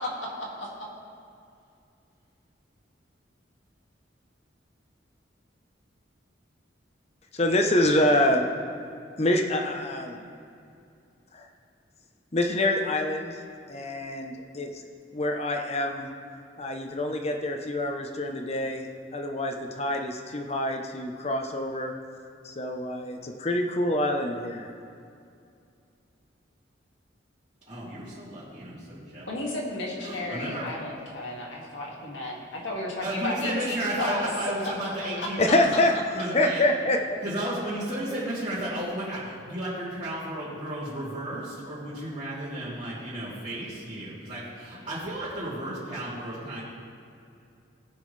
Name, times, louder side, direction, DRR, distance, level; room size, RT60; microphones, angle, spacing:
voice 1, 0.0-0.7 29.3-34.3 35.2-35.3, left 1 dB, 90° left, -2 dB, 2.1 m, -33 dB
voice 2, 7.3-8.5 9.2-10.2 11.3-11.4 12.3-13.4 13.7-14.7 15.1-16.1 16.6-18.9 19.1-21.9 22.4-24.7 35.4-37.2, left 1 dB, 35° left, 4 dB, 0.8 m, -26 dB
voice 3, 27.7-29.3 30.0-30.7 33.0-35.7 36.1-36.6 37.2-46.6, right 1 dB, 30° right, -12 dB, 2.7 m, -33 dB
18.5 x 6.2 x 3.3 m, 2.5 s
head